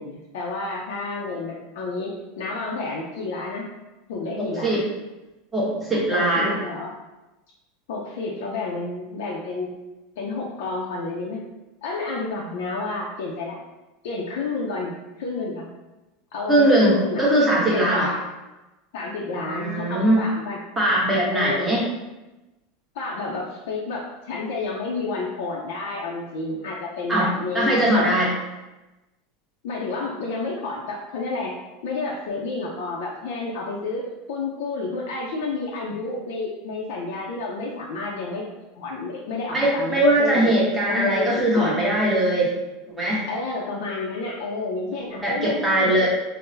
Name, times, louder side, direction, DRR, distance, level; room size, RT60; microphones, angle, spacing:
voice 1, 0.0-3.7 4.1-4.9 6.1-6.9 7.9-9.7 10.2-11.4 11.8-13.6 14.0-15.7 16.3-17.2 17.7-18.2 18.9-20.6 21.3-21.8 22.9-28.3 29.6-31.5 31.8-40.6 40.9-41.8 43.3-46.1, left 3 dB, 75° left, -3 dB, 0.5 m, -30 dB
voice 2, 4.4-4.8 5.5-6.6 16.5-18.1 19.5-20.2 20.8-21.8 27.1-27.3 27.5-28.3 39.5-42.5 42.9-43.2 45.2-46.1, right 1 dB, 5° right, -6 dB, 0.9 m, -20 dB
3.7 x 2.0 x 2.6 m, 1.0 s
supercardioid pair, 150°, 0 cm